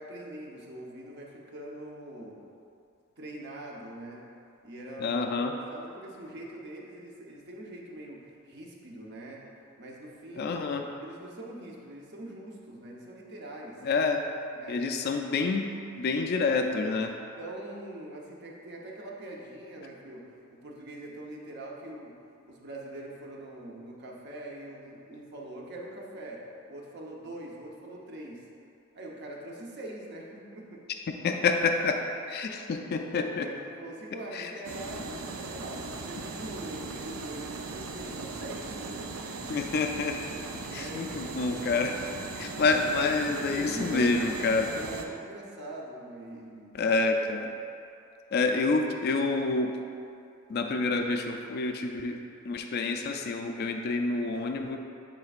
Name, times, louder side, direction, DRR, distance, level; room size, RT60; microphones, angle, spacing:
voice 1, 0.0-2.4 3.2-4.3 4.6-5.2 5.6-9.5 9.8-10.6 11.0-13.8 14.5-15.2 17.4-22.2 22.5-28.5 28.9-30.8 33.2-39.2 40.6-41.2 42.7-42.8 43.5-46.8, right 1 dB, 55° right, -2 dB, 0.9 m, -43 dB
voice 2, 5.0-5.5 10.4-10.9 13.8-14.2 14.7-15.7 15.9-17.1 31.1-32.0 32.3-33.5 34.3-34.5 39.5-40.2 40.7-42.0 42.4-44.7 46.7-47.5 48.3-49.7 50.5-54.8, left 3 dB, 50° left, 4 dB, 0.3 m, -28 dB
sound 1, 34.6-45.1, right 3 dB, 75° right, 0.5 m, -38 dB
9.4 x 4.4 x 2.4 m, 2.6 s
head